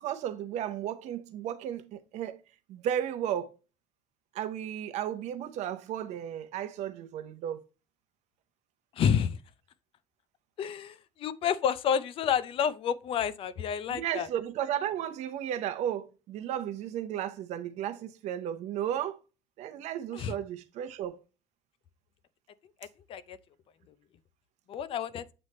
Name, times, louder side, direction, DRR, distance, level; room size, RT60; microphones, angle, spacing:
voice 1, 0.0-2.4 2.7-3.5 4.3-7.6 13.9-19.2 19.6-21.2, right 10 dB, 65° right, 0.8 m, -34 dB
voice 2, 9.0-9.4 10.6-14.3 20.1-20.3 23.1-23.4 24.7-25.3, left 8 dB, 45° left, 0.5 m, -29 dB
7.9 x 3.2 x 4.2 m
cardioid pair, 150°, 13 cm